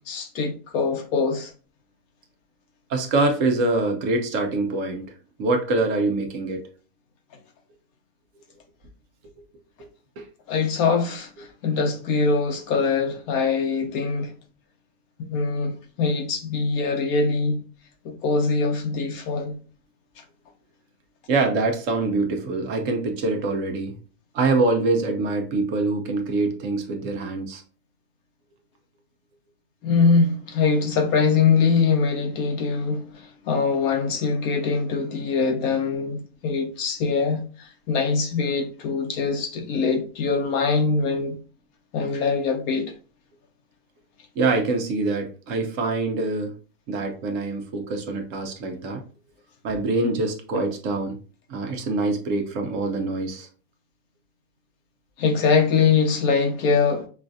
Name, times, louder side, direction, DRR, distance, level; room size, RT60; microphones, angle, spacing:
voice 1, 0.1-1.5 10.5-14.3 15.2-17.6 18.0-19.5 29.8-41.4 41.9-42.9 55.2-57.1, left 4 dB, 85° left, 1.2 m, -23 dB
voice 2, 2.9-5.1 5.4-6.7 10.2-10.3 21.3-24.0 24.3-27.6 44.4-46.6 46.9-49.0 49.6-51.2 51.5-53.5, right 3 dB, 65° right, 1.0 m, -24 dB
4.8 x 2.4 x 2.5 m
omnidirectional pair, 1.5 m